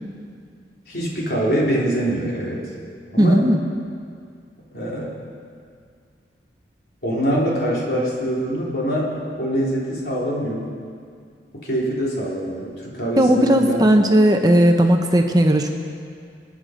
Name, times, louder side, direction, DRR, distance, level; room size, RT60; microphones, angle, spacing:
voice 1, 0.9-2.7 3.1-3.4 4.7-5.1 7.0-10.6 11.6-13.9, right 1 dB, 60° left, -4 dB, 3.6 m, -24 dB
voice 2, 3.2-3.6 13.2-15.7, equal, 20° right, 4 dB, 0.9 m, -16 dB
27.0 x 9.7 x 5.2 m, 2.2 s
head